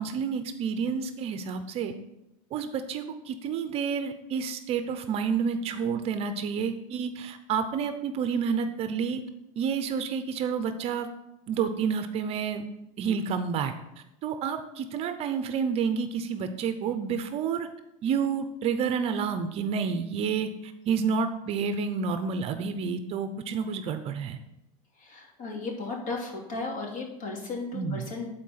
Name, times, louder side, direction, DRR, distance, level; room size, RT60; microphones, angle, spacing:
voice 1, 0.0-1.9 2.5-9.2 9.6-11.1 11.5-12.6 13.0-13.7 14.2-17.7 18.0-24.4 27.7-28.1, right 6 dB, 35° right, 9 dB, 0.6 m, -29 dB
voice 2, 25.0-28.3, left 3 dB, 50° left, -1 dB, 2.8 m, -35 dB
10.5 x 4.5 x 5.6 m, 0.87 s
supercardioid pair, 140°, 18 cm